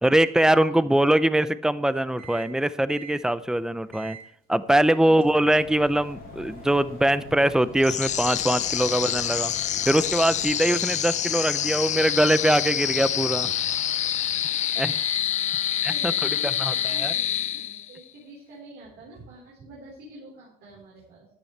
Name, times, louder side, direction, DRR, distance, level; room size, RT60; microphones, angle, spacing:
voice 1, 0.0-4.2 4.5-9.5 9.9-13.5 14.8-15.0 15.8-16.1 16.6-17.1, right 1 dB, 5° right, 14 dB, 0.6 m, -22 dB
Microwave oven, 2.2-2.6 2.9-3.2 3.9-4.3 4.7-14.3 14.7-15.3 15.7-16.4 16.7-17.3, right 6 dB, 60° right, 2.8 m, -46 dB
sound 1, 5.6-10.6, left 7 dB, 65° left, 1.2 m, -45 dB
sound 2, 7.8-18.0, left 11 dB, 45° left, 0.4 m, -27 dB
voice 2, 15.9-21.3, right 1 dB, 75° right, -4 dB, 4.5 m, -46 dB
14.0 x 10.5 x 3.3 m, 0.63 s
cardioid pair, 110°, 17 cm